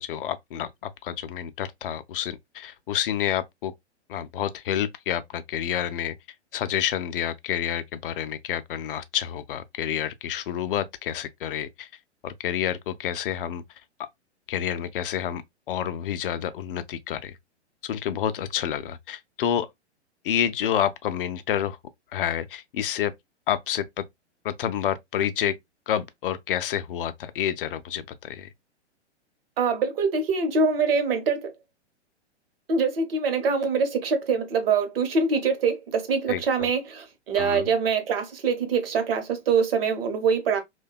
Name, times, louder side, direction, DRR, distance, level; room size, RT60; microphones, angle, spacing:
voice 1, 0.0-3.7 4.1-6.1 6.5-11.9 12.2-13.6 14.5-15.4 15.7-17.4 17.8-19.7 20.2-21.8 22.1-23.1 23.5-24.0 24.4-25.5 25.9-28.5 36.3-36.7 37.4-37.7, left 10 dB, 50° left, 0.4 m, -29 dB
voice 2, 29.6-31.5 32.7-40.6, right 5 dB, 55° right, 0.8 m, -24 dB
2.6 x 2.2 x 2.2 m
figure-of-eight pair, 115°, 35 cm